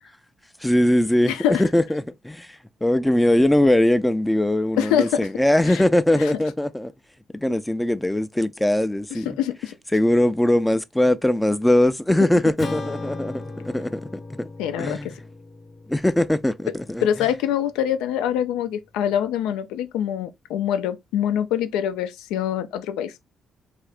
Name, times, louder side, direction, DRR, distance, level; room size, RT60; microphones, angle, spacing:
voice 1, 0.6-6.9 7.3-9.4 9.9-14.5 14.8-15.1 15.9-17.1, left 1 dB, 10° left, 0.3 m, -21 dB
voice 2, 1.3-1.6 4.8-5.3 5.7-5.8 6.2-6.3 9.3-9.7 14.6-15.1 17.0-23.2, left 10 dB, 90° left, 0.4 m, -24 dB
Acoustic guitar / Strum, 12.6-17.3, left 3 dB, 40° left, 0.7 m, -37 dB
2.7 x 2.4 x 3.3 m
supercardioid pair, 65°, 0 cm